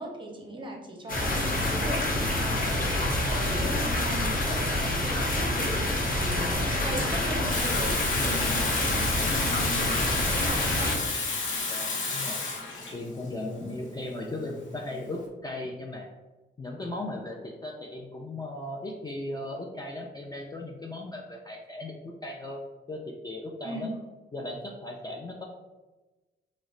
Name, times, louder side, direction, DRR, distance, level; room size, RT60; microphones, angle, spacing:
voice 1, 0.0-11.0 23.6-23.9, right 1 dB, 25° right, 0 dB, 0.6 m, -38 dB
sound 1, 1.1-10.9, left 1 dB, 50° left, 0.7 m, -27 dB
Water tap faucet / Sink (filling or washing), 7.5-15.2, left 4 dB, 80° left, 0.7 m, -31 dB
voice 2, 11.7-12.4 12.9-16.1 16.6-22.6 22.9-23.9 24.3-25.4, left 2 dB, 20° left, -1 dB, 0.3 m, -37 dB
3.1 x 2.0 x 3.7 m, 1.2 s
cardioid pair, 115°, 19 cm